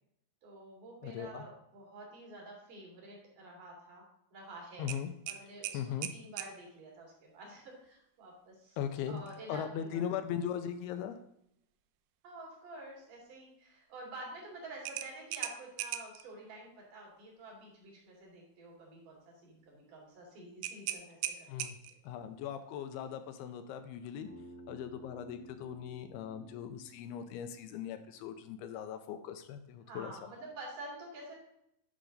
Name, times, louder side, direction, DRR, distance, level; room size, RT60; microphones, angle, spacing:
voice 1, 0.4-4.0 4.3-4.9 5.3-9.6 9.9-10.1 12.2-21.5 21.9-22.0 29.8-31.3, right 2 dB, 55° right, -2 dB, 3.7 m, -49 dB
voice 2, 1.0-1.4 4.8-5.1 5.7-6.1 8.8-9.2 9.5-11.2 21.5-21.8 22.0-24.3 24.7-30.1, left 9 dB, 85° left, 8 dB, 2.5 m, -39 dB
sound 1, 4.9-6.5 9.2-9.4 9.8-9.9 14.8-16.2 20.6-22.1, right 12 dB, 85° right, 2.2 m, -39 dB
Bass guitar, 24.2-28.5, right 1 dB, 5° right, 1.1 m, -55 dB
10.0 x 6.1 x 3.9 m, 0.78 s
omnidirectional pair, 4.7 m